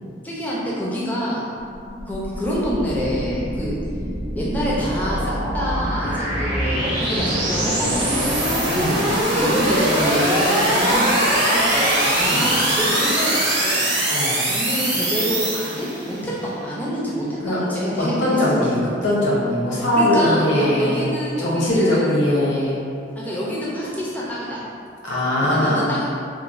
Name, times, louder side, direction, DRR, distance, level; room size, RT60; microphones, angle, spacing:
voice 1, 0.2-1.5 2.1-3.8 4.4-8.7 9.3-13.9 14.5-18.7 20.0-22.1 23.2-24.6 25.4-26.0, equal, 10° left, -6 dB, 0.4 m, -26 dB
sound 1, 1.6-16.2, right 1 dB, 65° right, 0.7 m, -22 dB
voice 2, 8.7-9.0 12.3-12.4 14.1-14.4 17.4-17.6 18.0-18.8 19.0-21.1 21.4-22.8 25.0-25.9, left 1 dB, 80° left, -6 dB, 0.7 m, -20 dB
3.0 x 2.1 x 2.4 m, 2.4 s
head